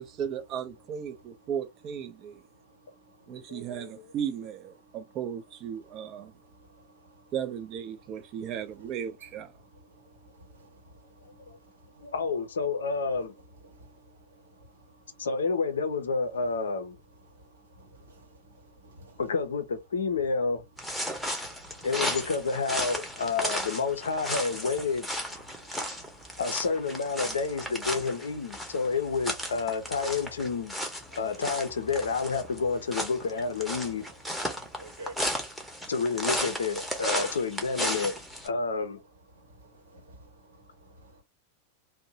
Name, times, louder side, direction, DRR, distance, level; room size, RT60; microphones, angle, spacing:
voice 1, 0.0-2.4 3.3-6.3 7.3-9.5, right 8 dB, 35° right, 0.5 m, -36 dB
voice 2, 0.8-1.6 2.1-4.2 4.8-5.3 5.7-7.3 7.9-12.1 13.0-15.3 16.3-16.7 16.9-19.3 20.1-20.3 20.9-22.2 23.5-23.6 23.9-24.1 24.6-24.7 25.3-26.4 27.2-27.4 27.9-28.1 28.4-29.2 30.7-31.2 33.9-36.2 36.8-37.1 38.4-38.6 39.0-41.2, right 1 dB, 70° right, 0.9 m, -55 dB
voice 3, 3.3-3.9 11.5-11.6 12.0-13.3 15.2-17.0 19.2-20.6 21.8-25.1 26.4-30.7 31.1-34.1 35.9-38.2 38.4-39.0, left 4 dB, 65° left, 0.5 m, -29 dB
sound 1, 20.8-38.5, equal, ahead, 0.8 m, -35 dB
2.6 x 2.1 x 2.7 m
figure-of-eight pair, 90°, 0 cm